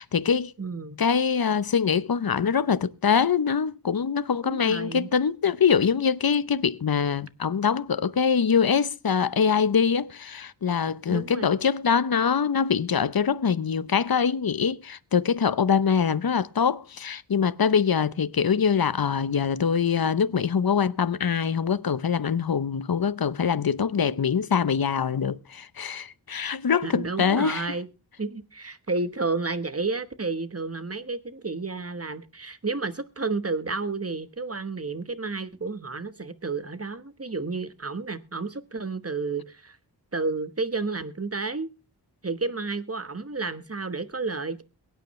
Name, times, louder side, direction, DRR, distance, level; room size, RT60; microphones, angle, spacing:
voice 1, 0.0-0.5 1.0-27.7, left 6 dB, 60° left, 0.7 m, -24 dB
voice 2, 0.6-1.0 4.4-5.1 11.1-11.5 26.8-27.9 28.2-39.8 40.1-41.7 42.2-44.6, right 3 dB, 35° right, 1.2 m, -31 dB
22.5 x 9.3 x 3.1 m
wide cardioid pair, 55°, 42 cm